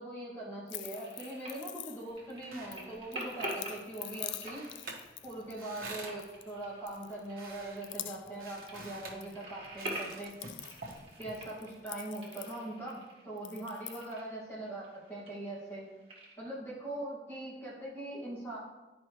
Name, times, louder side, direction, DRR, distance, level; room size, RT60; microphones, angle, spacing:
voice 1, 0.0-4.7 5.2-10.3 11.2-15.8 16.4-18.6, right 1 dB, 10° left, -7 dB, 1.9 m, -41 dB
sound 1, 0.7-2.3 2.7-6.5 6.9-7.5 7.8-8.4 8.7-9.3 9.6-13.0 13.4-14.1, left 13 dB, 80° left, 0.3 m, -46 dB
sound 2, 0.9-16.3, right 1 dB, 30° right, 1.7 m, -47 dB
sound 3, 2.1-11.8, right 3 dB, 50° right, 1.1 m, -50 dB
10.0 x 5.0 x 3.1 m, 1.1 s
head